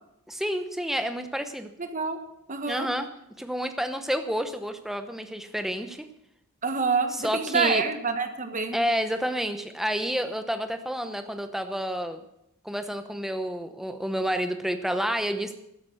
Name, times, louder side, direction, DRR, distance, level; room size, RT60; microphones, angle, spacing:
voice 1, 0.3-1.7 2.7-3.1 3.4-6.1 7.1-7.8 8.7-12.2 12.6-15.6, equal, ahead, 7 dB, 0.8 m, -29 dB
voice 2, 1.8-2.2 2.5-2.9 6.6-8.8, right 5 dB, 35° right, 7 dB, 1.3 m, -27 dB
13.0 x 11.0 x 6.4 m, 0.82 s
head